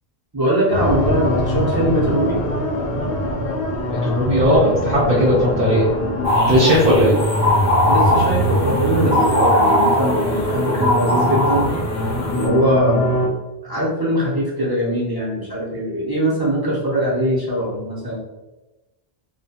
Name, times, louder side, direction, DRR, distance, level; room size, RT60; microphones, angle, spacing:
voice 1, 0.3-2.4 7.0-7.1 7.9-11.7 12.4-13.3 13.6-18.2, equal, 25° right, -6 dB, 0.6 m, -21 dB
sound 1, 0.7-13.3, equal, 70° left, 0.7 m, -22 dB
voice 2, 3.9-5.9 6.5-7.1, equal, 50° right, -6 dB, 0.9 m, -16 dB
sound 2, 6.2-12.5, left 1 dB, 20° left, 0.6 m, -21 dB
2.7 x 2.2 x 2.8 m, 1.1 s
omnidirectional pair, 1.1 m